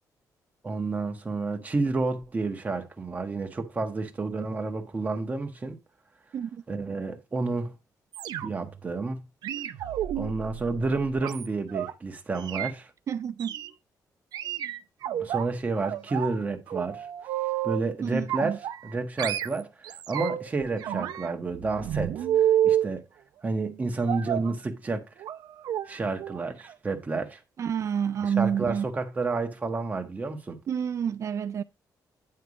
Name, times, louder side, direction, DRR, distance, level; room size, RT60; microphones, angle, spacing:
voice 1, 0.6-5.8 6.7-7.7 8.4-9.2 10.1-12.9 15.2-17.1 17.6-18.6 18.8-23.0 23.4-25.1 25.9-27.4 28.2-30.6, right 3 dB, 20° right, 1.3 m, -30 dB
sound 1, 8.1-8.8 9.4-11.9 12.4-12.7 13.4-13.7 14.3-15.5 15.8-16.4 16.7-17.9 18.3-18.9 19.2-20.5 20.8-22.9 24.1-24.5 25.2-25.4 25.6-25.9 26.2-26.4 26.7-26.8, right 11 dB, 90° right, 0.6 m, -30 dB
voice 2, 13.1-13.5 18.0-18.6 27.6-28.9 30.7-31.6, right 8 dB, 45° right, 0.3 m, -29 dB
9.6 x 3.6 x 4.8 m
cardioid pair, 140°, 7 cm